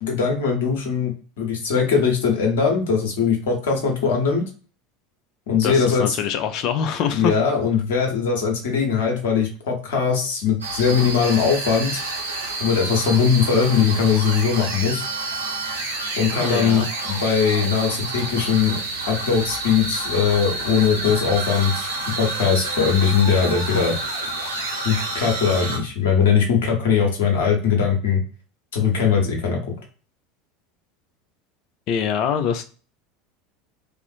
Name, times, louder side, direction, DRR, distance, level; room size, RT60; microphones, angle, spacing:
voice 1, 0.0-4.5 5.5-6.2 7.1-12.0 12.6-15.0 16.2-18.8 19.1-21.9 22.2-23.9 24.8-28.2 28.7-29.6, left 6 dB, 65° left, 1 dB, 0.9 m, -20 dB
voice 2, 5.6-7.3 16.4-16.9 31.9-32.6, left 8 dB, 45° left, 7 dB, 0.4 m, -24 dB
sound 1, 10.6-25.8, right 2 dB, 75° right, 0.7 m, -29 dB
2.6 x 2.4 x 2.5 m, 0.38 s
figure-of-eight pair, 75°, 0 cm